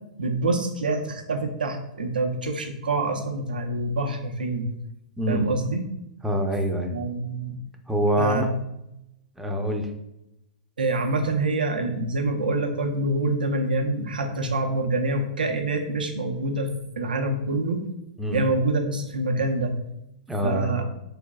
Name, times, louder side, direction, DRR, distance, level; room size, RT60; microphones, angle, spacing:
voice 1, 0.2-4.7 5.3-5.8 6.9-7.5 8.2-8.6 10.8-16.7 17.0-17.8 18.3-19.8 20.4-20.8, right 2 dB, 90° right, 3 dB, 0.6 m, -26 dB
voice 2, 5.2-5.5 6.2-6.9 7.9-8.5 9.4-9.9 18.2-18.4 20.3-20.7, equal, 5° right, 2 dB, 0.5 m, -25 dB
3.8 x 3.3 x 2.3 m, 0.84 s
hypercardioid pair, 115°, 5 cm